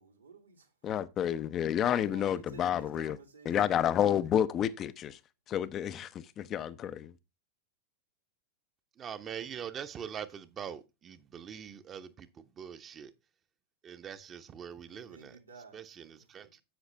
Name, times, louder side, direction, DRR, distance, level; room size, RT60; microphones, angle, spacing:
voice 1, 0.0-0.9 1.9-3.6 14.9-15.8 16.4-16.5, right 5 dB, 80° right, 2.9 m, -53 dB
voice 2, 0.8-3.2 3.5-5.2 5.5-7.1, left 10 dB, 30° left, 0.7 m, -30 dB
voice 3, 9.0-13.1 13.8-15.4 15.7-16.6, right 8 dB, 25° right, 1.0 m, -43 dB
10.5 x 8.1 x 3.3 m
figure-of-eight pair, 90°, 0 cm